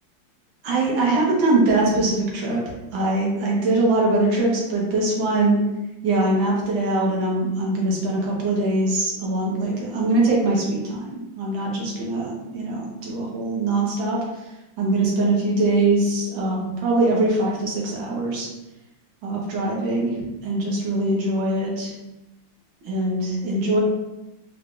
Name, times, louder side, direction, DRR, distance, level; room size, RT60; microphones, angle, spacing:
voice 1, 0.6-2.6 2.9-5.6 6.0-14.2 14.8-18.5 19.2-21.9 22.8-23.8, right 2 dB, 85° right, -3 dB, 1.9 m, -22 dB
4.4 x 2.5 x 3.7 m, 0.97 s
omnidirectional pair, 2.1 m